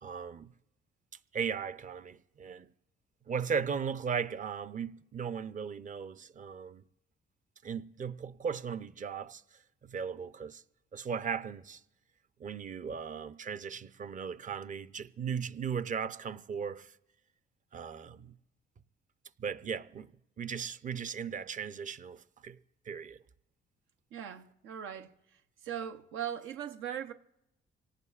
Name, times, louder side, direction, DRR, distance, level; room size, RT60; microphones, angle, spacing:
voice 1, 0.0-0.5 1.3-2.7 3.3-6.8 7.6-9.4 9.8-10.6 10.9-11.8 12.4-16.9 17.7-18.3 19.4-20.1 20.4-22.6 22.9-23.2, right 6 dB, 40° right, 0.6 m, -37 dB
voice 2, 24.1-27.1, right 9 dB, 85° right, 0.7 m, -40 dB
25.0 x 18.0 x 2.4 m
cardioid pair, 90°, 20 cm